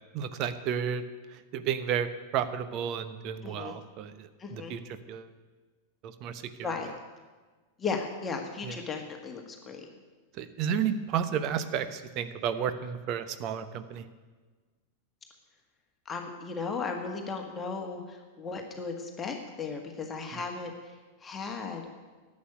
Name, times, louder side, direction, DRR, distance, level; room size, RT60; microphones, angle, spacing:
voice 1, 0.1-1.0 1.3-4.8 5.1-5.3 6.0-6.7 8.6-8.8 10.3-14.0 20.3-20.4, right 8 dB, 40° right, 10 dB, 1.0 m, -32 dB
voice 2, 3.4-3.8 4.4-4.7 6.6-6.9 7.8-9.9 16.1-21.0 21.2-21.8, left 4 dB, 20° left, 2 dB, 1.7 m, -36 dB
11.5 x 8.7 x 9.4 m, 1.4 s
figure-of-eight pair, 90°, 0 cm